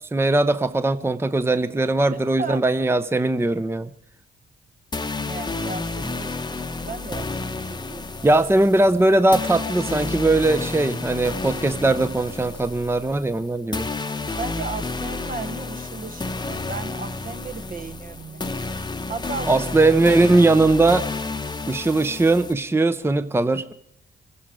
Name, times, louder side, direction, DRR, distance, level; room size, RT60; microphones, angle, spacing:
voice 1, 0.1-3.9 8.2-13.9 19.5-21.0 21.7-23.7, right 2 dB, 10° right, 0.7 m, -20 dB
voice 2, 2.0-2.6 5.3-6.3 6.8-8.3 14.4-18.5 19.1-19.7, right 4 dB, 45° right, 1.1 m, -35 dB
sound 1, 4.9-22.5, left 3 dB, 20° left, 0.9 m, -31 dB
24.5 x 9.8 x 4.9 m
supercardioid pair, 50°, 19 cm